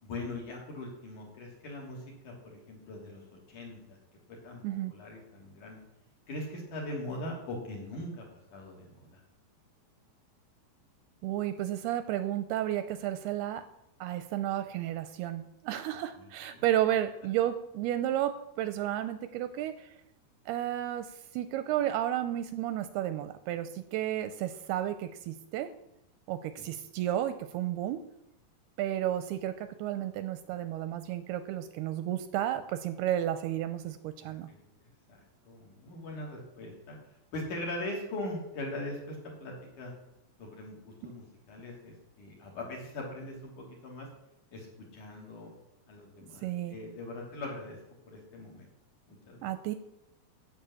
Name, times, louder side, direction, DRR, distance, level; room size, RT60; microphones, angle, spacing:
voice 1, 0.0-3.2 3.5-4.0 4.3-4.6 4.9-5.8 6.3-9.2 16.2-16.3 34.2-34.6 35.1-37.0 37.3-39.9 40.4-44.1 44.5-44.7 44.9-45.5 45.9-47.8 48.1-48.7 49.1-49.5, left 1 dB, 50° left, -1 dB, 4.1 m, -41 dB
voice 2, 11.2-13.6 14.0-19.9 20.5-25.7 26.3-28.0 28.8-34.5 46.4-46.8 49.4-49.8, right 12 dB, 80° right, 11 dB, 2.5 m, -32 dB
10.5 x 9.0 x 7.0 m, 0.84 s
omnidirectional pair, 4.9 m